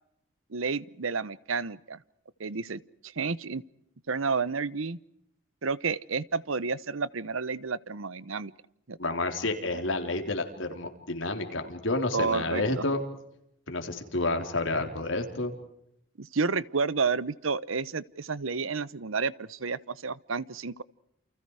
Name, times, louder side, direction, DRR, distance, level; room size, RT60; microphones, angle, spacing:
voice 1, 0.5-2.0 2.4-2.8 3.2-3.6 4.1-5.0 5.6-8.5 8.9-9.0 12.1-12.8 16.2-20.8, right 4 dB, 85° right, 19 dB, 0.9 m, -30 dB
voice 2, 9.0-13.0 13.7-15.5, left 2 dB, 75° left, 4 dB, 3.9 m, -30 dB
29.5 x 29.0 x 4.9 m, 0.79 s
head